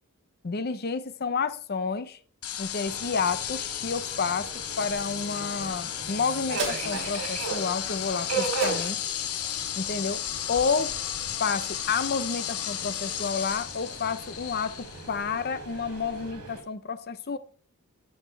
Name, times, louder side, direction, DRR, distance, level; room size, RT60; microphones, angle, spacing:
voice 1, 0.4-2.2 2.6-9.0 9.8-10.9 11.4-17.4, left 5 dB, 45° left, 0.6 m, -30 dB
sound 1, 2.4-16.3, left 10 dB, 75° left, 0.8 m, -34 dB
Subway metro underground, 2.8-16.6, right 5 dB, 85° right, 2.9 m, -38 dB
sound 2, 6.6-11.3 11.8-11.9, right 3 dB, 55° right, 3.4 m, -40 dB
11.5 x 6.5 x 3.3 m
head